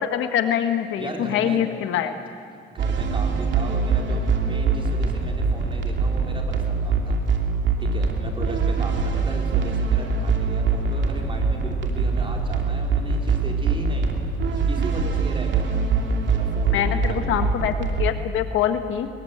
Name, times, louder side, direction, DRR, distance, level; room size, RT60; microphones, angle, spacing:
voice 1, 0.0-2.1 16.7-19.1, left 9 dB, 85° left, 8 dB, 1.5 m, -24 dB
voice 2, 1.0-1.6 2.7-7.2 7.8-14.1 14.7-15.9 16.3-17.4, right 2 dB, 25° right, 1 dB, 4.5 m, -36 dB
sound 1, 2.8-18.1, right 4 dB, 65° right, 2.7 m, -23 dB
22.0 x 21.0 x 8.1 m, 2.4 s
cardioid pair, 90°, 20 cm